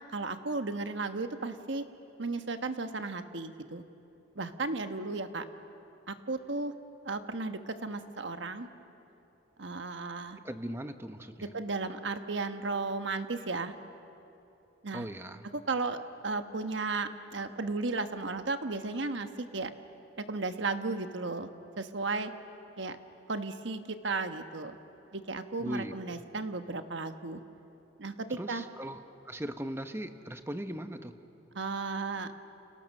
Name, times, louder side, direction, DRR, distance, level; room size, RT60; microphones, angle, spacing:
voice 1, 0.1-1.8 2.2-3.8 4.3-5.4 6.1-6.7 7.0-8.7 9.6-10.4 11.5-13.7 14.8-15.1 15.7-16.0 16.2-19.7 20.3-21.5 21.8-22.3 22.8-23.0 23.3-24.8 25.1-27.4 28.0-28.6 31.5-32.3, right 3 dB, 65° right, 8 dB, 1.3 m, -34 dB
voice 2, 10.4-11.5 14.9-15.4 25.6-25.9 28.3-31.1, equal, 15° right, 8 dB, 1.0 m, -39 dB
30.0 x 29.0 x 6.6 m, 2.9 s
head